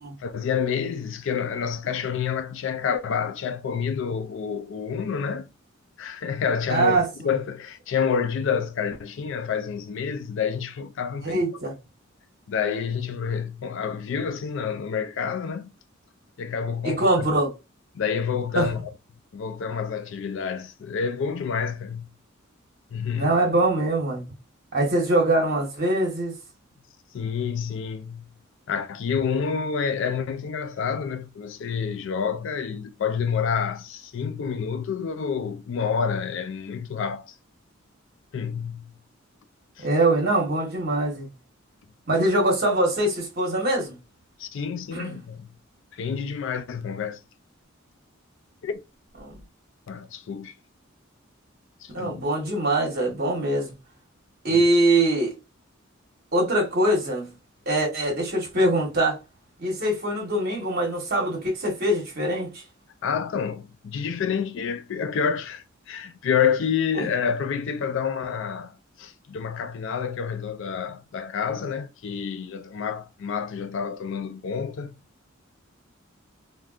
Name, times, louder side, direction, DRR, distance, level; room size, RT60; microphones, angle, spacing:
voice 1, 0.2-5.5 6.0-7.0 7.2-11.6 12.5-15.7 16.4-17.3 17.9-18.9 19.3-22.1 22.9-23.3 27.1-28.3 28.7-37.3 38.3-38.9 39.8-39.9 44.4-45.5 45.9-47.2 48.6-48.8 49.9-50.5 51.8-52.2 54.5-54.7 63.0-74.9, left 6 dB, 65° left, 0.4 m, -28 dB
voice 2, 6.7-7.1 11.2-11.7 16.8-17.5 18.5-18.7 23.2-24.2 24.7-26.3 39.8-41.3 42.1-44.0 44.9-45.1 49.2-49.3 51.9-53.7 54.4-55.3 56.3-57.3 57.7-59.2 59.6-62.6 67.0-67.1, right 1 dB, 50° right, 1.1 m, -23 dB
3.4 x 2.2 x 2.4 m
head